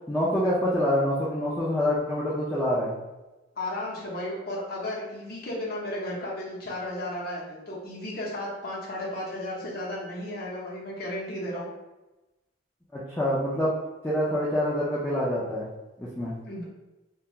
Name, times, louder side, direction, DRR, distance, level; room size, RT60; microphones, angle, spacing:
voice 1, 0.1-2.9 12.9-13.8 14.0-15.7 16.0-16.4, equal, 10° left, -8 dB, 0.4 m, -26 dB
voice 2, 3.6-11.7 16.4-16.6, left 1 dB, 50° left, -5 dB, 0.7 m, -34 dB
2.4 x 2.2 x 2.9 m, 1.0 s
head